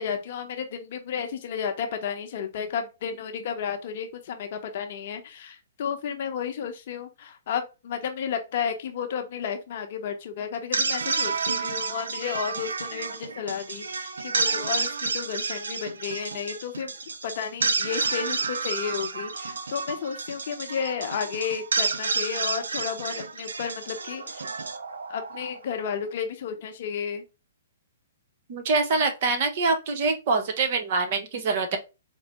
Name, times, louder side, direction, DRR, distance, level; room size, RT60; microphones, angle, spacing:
voice 1, 0.0-17.0 17.2-24.5 25.1-27.2, left 7 dB, 55° left, 0.7 m, -32 dB
sound 1, 10.5-25.8, right 4 dB, 80° right, 0.4 m, -30 dB
voice 2, 28.5-31.8, right 4 dB, 50° right, 0.8 m, -25 dB
4.4 x 2.0 x 2.9 m
hypercardioid pair, 125°, 0 cm